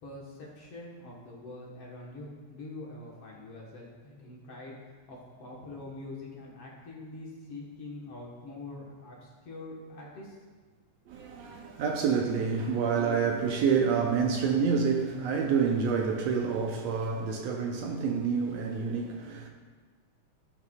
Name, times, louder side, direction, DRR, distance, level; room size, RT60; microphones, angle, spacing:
voice 1, 0.0-10.4, left 2 dB, 55° left, 2.1 m, -44 dB
voice 2, 11.1-19.5, right 6 dB, 75° right, 1.7 m, -28 dB
16.5 x 5.7 x 2.4 m
omnidirectional pair, 3.5 m